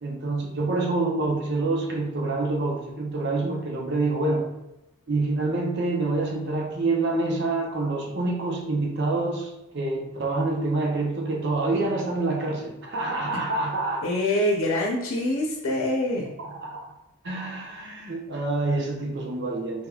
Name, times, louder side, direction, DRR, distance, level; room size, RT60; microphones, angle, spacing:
voice 1, 0.0-4.5 5.1-14.0 16.4-16.9 17.2-19.9, right 2 dB, 55° right, 0 dB, 0.6 m, -27 dB
voice 2, 14.0-16.3, left 1 dB, 80° left, -2 dB, 0.7 m, -25 dB
4.4 x 3.3 x 2.3 m, 0.90 s
head